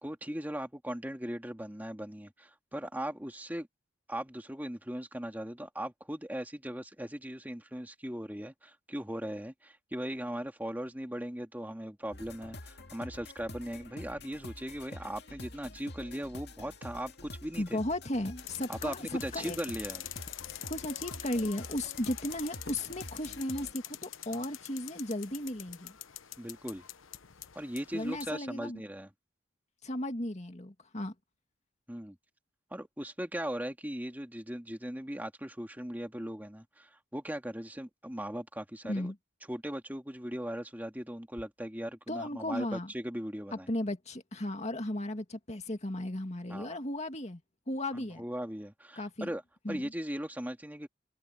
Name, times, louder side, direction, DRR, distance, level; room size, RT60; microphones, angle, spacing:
voice 1, 0.0-3.7 4.1-17.8 18.7-20.0 24.3-24.4 26.4-26.8 27.5-29.1 31.9-32.2 32.7-39.1 39.5-43.7 46.5-46.8 47.9-49.4 49.7-50.9, equal, 10° right, 2.2 m, -39 dB
sound 1, 12.1-23.7, left 2 dB, 55° left, 2.4 m, -47 dB
voice 2, 17.6-19.6 20.7-26.0 27.9-28.8 29.8-31.1 38.9-39.2 42.1-42.9 43.7-47.4 47.7-48.2 49.0-49.3 49.6-49.8, left 1 dB, 35° left, 2.2 m, -35 dB
sound 2, 18.4-28.4, left 12 dB, 85° left, 1.0 m, -45 dB
head